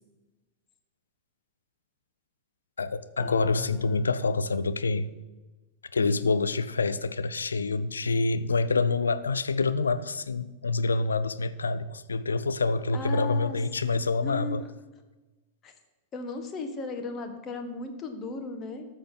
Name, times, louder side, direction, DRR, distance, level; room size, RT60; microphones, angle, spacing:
voice 1, 2.8-5.1 5.9-14.6, left 3 dB, 75° left, 14 dB, 0.5 m, -27 dB
sound 1, 3.2-4.6, left 6 dB, 45° left, 0.9 m, -39 dB
voice 2, 12.9-13.6 13.8-14.7 15.6-15.7 16.1-18.9, left 3 dB, 30° left, 6 dB, 1.5 m, -36 dB
13.5 x 6.4 x 5.8 m, 1.1 s
figure-of-eight pair, 90°, 0 cm